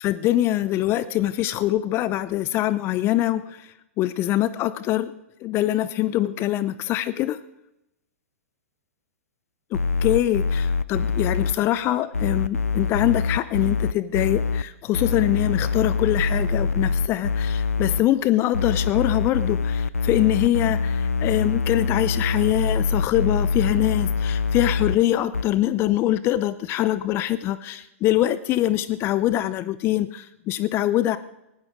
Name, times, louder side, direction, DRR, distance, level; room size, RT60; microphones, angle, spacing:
voice 1, 0.0-3.7 4.0-5.1 5.4-7.4 9.7-31.2, left 14 dB, 30° left, 16 dB, 0.6 m, -23 dB
sound 1, 9.7-11.5 12.1-14.6 14.9-18.0 18.5-25.0 25.3-25.4, left 5 dB, 85° left, 0.5 m, -24 dB
19.5 x 16.0 x 3.7 m, 0.90 s
figure-of-eight pair, 110°, 8 cm